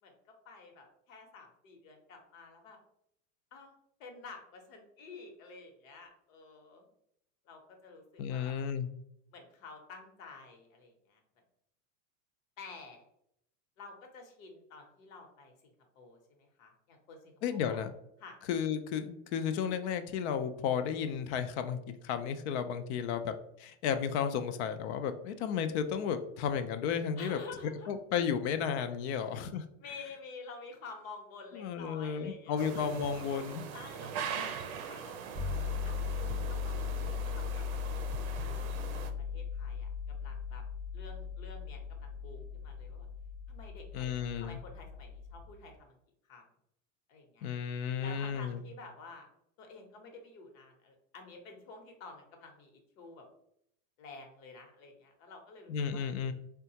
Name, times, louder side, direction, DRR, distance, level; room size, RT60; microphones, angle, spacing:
voice 1, 0.0-2.8 3.5-3.7 4.0-6.9 7.4-8.5 9.3-11.2 12.6-13.0 13.8-17.8 18.2-18.4 27.2-27.9 29.1-29.4 29.8-32.9 33.7-35.5 35.8-39.0 39.3-40.6 40.9-43.1 43.5-44.1 44.4-46.0 46.2-46.5 47.1-47.5 48.0-49.3 49.6-53.2 54.0-56.0, left 4 dB, 70° left, 3 dB, 1.0 m, -50 dB
voice 2, 8.2-8.9 17.4-17.9 18.5-27.4 27.9-29.6 31.5-33.6 34.4-34.5 43.9-44.6 47.4-48.6 55.7-56.3, left 7 dB, 55° left, 9 dB, 0.5 m, -33 dB
sound 1, 32.6-39.1, right 7 dB, 80° right, 0.6 m, -41 dB
sound 2, 35.3-45.5, left 6 dB, 10° right, 0.4 m, -38 dB
3.6 x 2.3 x 2.8 m, 0.75 s
supercardioid pair, 125°, 41 cm